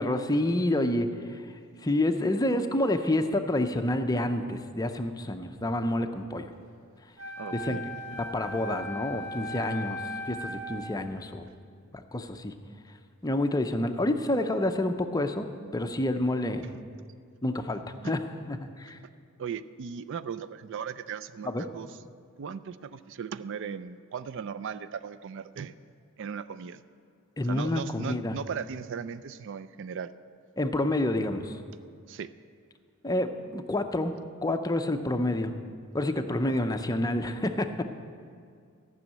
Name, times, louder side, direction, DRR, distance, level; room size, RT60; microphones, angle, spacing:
voice 1, 0.0-1.4 1.8-6.4 7.5-7.8 8.2-10.0 10.3-11.4 11.9-12.5 13.2-16.7 17.4-18.2 18.5-19.0 21.4-21.6 27.4-28.4 30.6-31.6 33.0-34.1 34.4-35.5 35.9-37.8, left 1 dB, 15° left, 7 dB, 0.6 m, -28 dB
Wind instrument woodwind instrument, 7.2-11.0, equal, 85° right, 3.5 m, -38 dB
voice 2, 7.4-7.8 16.6-16.7 18.0-18.1 19.4-21.9 22.4-25.7 26.2-26.8 27.4-30.1 32.1-32.3, right 7 dB, 60° right, 13 dB, 0.4 m, -37 dB
14.0 x 6.3 x 8.6 m, 2.2 s
head